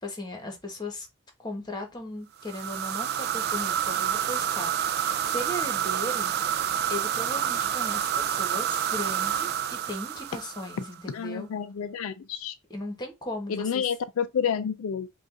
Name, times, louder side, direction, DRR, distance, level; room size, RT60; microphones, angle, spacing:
voice 1, 0.0-1.1 1.4-6.3 6.9-11.5 12.7-13.8, left 1 dB, 20° left, 1.2 m, -37 dB
sound 1, 2.4-11.0, right 9 dB, 50° right, 0.3 m, -28 dB
voice 2, 11.1-12.5 13.5-15.1, left 7 dB, 70° left, 0.4 m, -29 dB
5.2 x 2.4 x 3.8 m
head